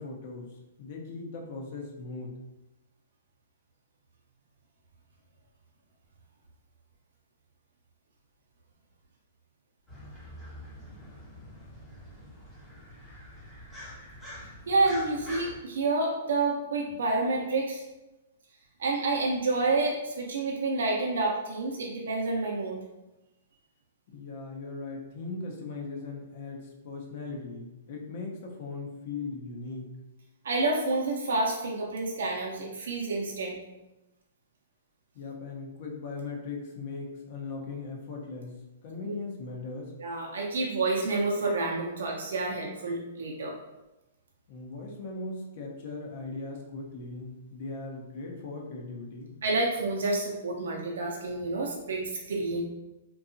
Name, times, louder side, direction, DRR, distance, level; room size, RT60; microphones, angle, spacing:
voice 1, 0.0-2.3 24.1-29.9 35.1-39.9 44.5-49.3, left 3 dB, 50° left, 0 dB, 0.6 m, -39 dB
sound 1, 9.9-15.6, equal, 10° left, 0.6 m, -45 dB
voice 2, 14.7-17.8 18.8-22.8 30.4-33.6 39.0-39.1 40.0-43.5 49.4-52.6, right 3 dB, 75° right, -2 dB, 0.5 m, -29 dB
2.7 x 2.3 x 2.5 m, 0.99 s
hypercardioid pair, 145°, 0 cm